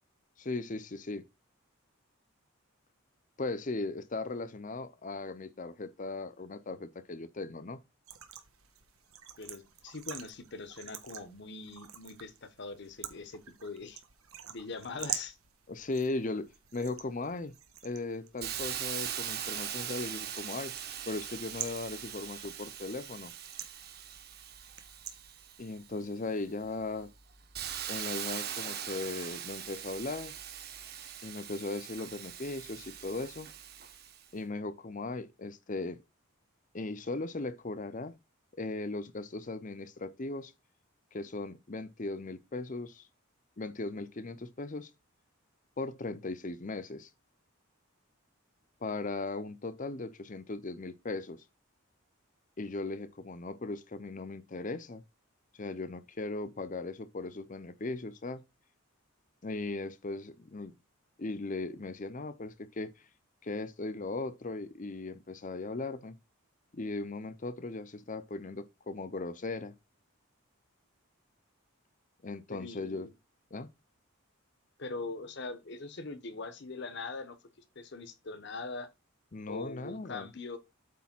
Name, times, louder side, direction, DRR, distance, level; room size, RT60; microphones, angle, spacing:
voice 1, 0.4-1.3 3.4-7.8 15.7-17.6 17.8-20.7 21.1-23.3 25.6-27.1 27.9-30.3 31.2-33.5 34.3-36.0 36.7-38.1 38.5-40.5 41.1-43.1 43.6-44.9 45.8-47.1 48.8-51.4 52.6-55.0 55.6-58.4 59.4-60.7 61.2-63.0 63.4-66.2 66.7-69.7 72.2-73.1 73.5-73.7 79.3-80.3, left 3 dB, 35° left, 0.6 m, -38 dB
sound 1, 8.0-25.5, right 10 dB, 80° right, 1.2 m, -47 dB
voice 2, 9.4-14.0 14.5-15.4 72.5-73.1 74.8-77.4 77.7-78.9 79.5-80.6, left 3 dB, 55° left, 1.0 m, -42 dB
Hiss, 18.4-26.0 26.5-34.2, right 9 dB, 45° right, 1.1 m, -41 dB
8.5 x 3.4 x 5.9 m
head